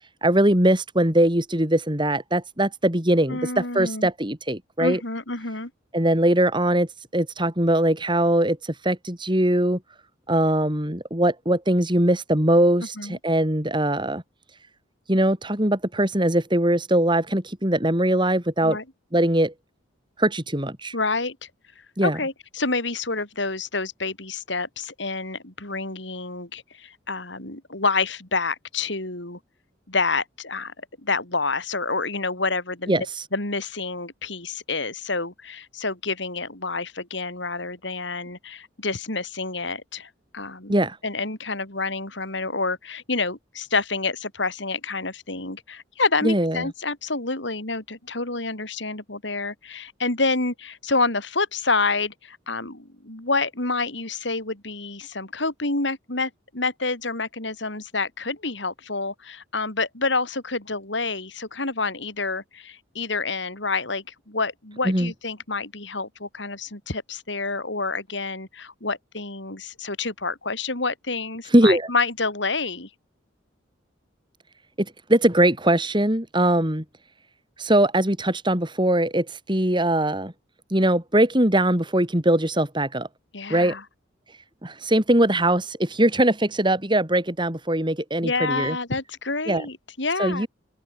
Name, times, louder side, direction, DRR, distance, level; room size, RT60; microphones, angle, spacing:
voice 1, 0.2-5.0 5.9-9.8 10.3-14.2 15.1-18.8 19.1-19.5 20.2-20.9 22.0-22.2 32.9-33.2 40.7-41.0 46.2-46.6 64.8-65.1 71.5-71.9 74.8-76.8 77.6-80.3 80.7-83.1 83.5-83.8 84.6-88.8 89.5-89.7 90.2-90.5, right 1 dB, 25° right, 4.2 m, -21 dB
voice 2, 3.3-4.1 4.8-5.7 13.0-13.2 18.6-18.8 20.9-21.4 22.0-29.4 29.9-30.7 31.0-33.1 33.3-40.7 41.0-72.9 83.3-83.8 88.2-90.5, left 3 dB, 65° left, 4.5 m, -28 dB
open air
head